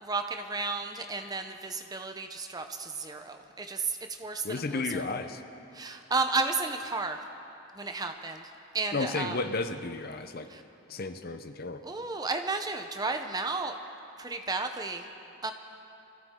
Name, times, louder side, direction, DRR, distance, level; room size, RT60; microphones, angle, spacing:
voice 1, 0.0-5.1 5.7-7.2 7.8-8.5 8.7-9.4 10.5-10.6 11.8-13.8 14.2-15.1 15.4-15.5, right 3 dB, 20° right, 6 dB, 0.7 m, -33 dB
voice 2, 4.4-5.4 8.9-10.5 10.9-11.8, left 3 dB, 45° left, 9 dB, 0.7 m, -33 dB
24.5 x 15.5 x 3.7 m, 2.8 s
head